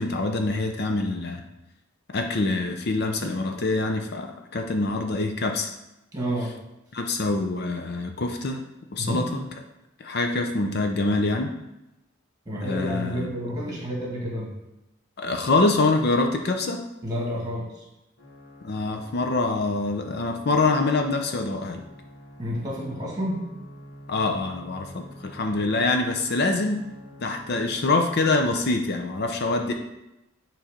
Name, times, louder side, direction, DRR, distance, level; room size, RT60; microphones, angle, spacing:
voice 1, 0.0-1.4 2.1-5.7 6.9-8.6 8.9-9.4 10.0-11.5 12.6-13.3 15.2-16.8 18.6-21.8 24.1-26.8 27.2-29.7, left 3 dB, 55° left, 4 dB, 0.6 m, -25 dB
voice 2, 6.1-6.5 9.0-9.3 12.5-14.5 17.0-17.8 22.4-23.4, equal, 20° right, -3 dB, 1.9 m, -30 dB
sound 1, 18.2-28.6, equal, 75° left, 1.7 m, -47 dB
7.4 x 3.1 x 5.0 m, 0.92 s
head